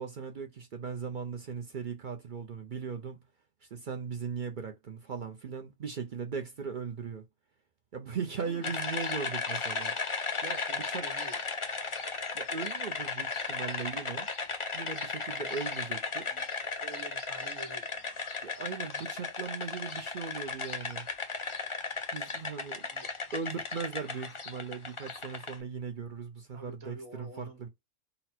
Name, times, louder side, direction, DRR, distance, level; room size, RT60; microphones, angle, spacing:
voice 1, 0.0-3.2 3.7-7.2 7.9-9.9 10.4-11.0 12.3-14.3 14.7-16.3 18.4-21.1 22.1-22.9 23.3-27.7, right 6 dB, 55° right, 0.5 m, -38 dB
voice 2, 8.4-8.8 10.7-11.4 15.2-16.5 16.8-18.2 22.9-23.3 26.5-27.7, right 3 dB, 85° right, 1.7 m, -49 dB
sound 1, 8.6-25.5, left 4 dB, 40° left, 0.4 m, -36 dB
4.0 x 2.1 x 4.2 m
omnidirectional pair, 1.4 m